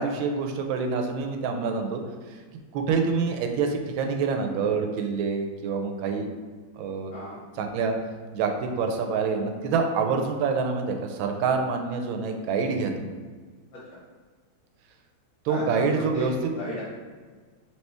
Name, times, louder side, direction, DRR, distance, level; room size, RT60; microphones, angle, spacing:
voice 1, 0.0-2.0 2.3-2.4 2.7-6.3 6.8-7.1 7.5-7.9 8.3-13.1 15.4-16.5, right 5 dB, 80° right, 4 dB, 1.3 m, -26 dB
voice 2, 15.5-16.8, right 1 dB, 65° left, -8 dB, 1.7 m, -34 dB
4.3 x 3.0 x 3.3 m, 1.5 s
omnidirectional pair, 2.2 m